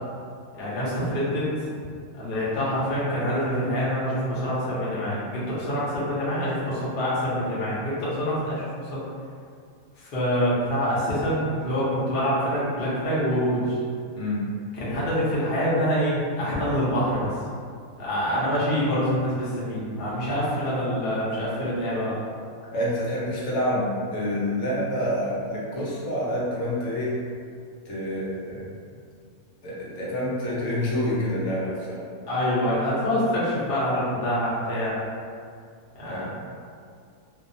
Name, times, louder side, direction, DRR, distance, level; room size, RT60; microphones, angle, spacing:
voice 1, 0.5-1.6 2.2-8.6 8.9-9.0 10.0-13.8 14.8-17.3 18.0-22.1 32.3-34.9 35.9-36.3, equal, 45° left, -8 dB, 0.8 m, -26 dB
voice 2, 14.1-14.5 22.7-27.2 27.9-28.7 29.6-32.0 36.0-36.3, equal, 75° left, -6 dB, 1.1 m, -27 dB
2.6 x 2.2 x 2.6 m, 2.2 s
omnidirectional pair, 1.5 m